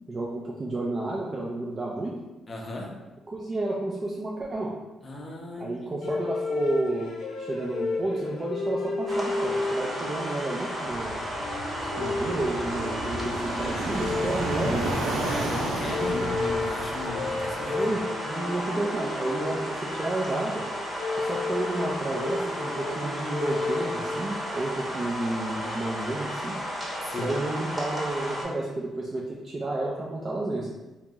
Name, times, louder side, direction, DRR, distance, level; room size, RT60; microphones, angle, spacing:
voice 1, 0.1-2.1 3.3-4.7 5.6-11.1 12.0-14.9 15.9-16.3 17.7-20.6 21.2-26.6 27.2-30.7, right 2 dB, 35° right, -4 dB, 0.4 m, -31 dB
voice 2, 2.5-3.1 5.0-6.0 15.2-18.0 27.0-27.4, left 1 dB, 30° left, 0 dB, 0.6 m, -36 dB
sound 1, 6.0-24.5, left 3 dB, 85° left, 0.5 m, -33 dB
sound 2, 9.1-28.4, equal, 15° right, 0.9 m, -34 dB
Fixed-wing aircraft airplane, 10.8-17.7, right 1 dB, 90° right, 0.5 m, -33 dB
2.7 x 2.0 x 3.5 m, 1.1 s
cardioid pair, 90°, 0 cm